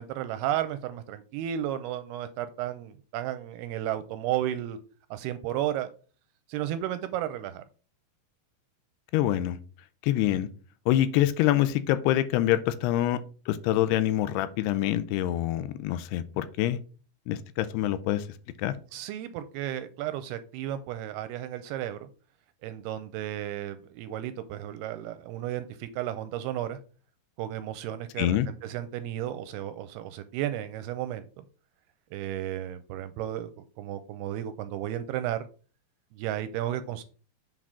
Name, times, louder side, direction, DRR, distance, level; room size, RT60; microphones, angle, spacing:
voice 1, 0.0-4.8 5.1-5.9 6.5-7.6 18.9-22.1 22.6-26.8 27.4-31.4 32.1-35.4 36.1-37.0, right 12 dB, 85° right, 2.3 m, -33 dB
voice 2, 9.1-9.6 10.0-10.5 10.9-13.2 13.5-16.8 17.3-18.2 18.6-18.7 28.2-28.5, left 13 dB, 80° left, 2.6 m, -25 dB
8.0 x 3.7 x 6.1 m
omnidirectional pair, 4.8 m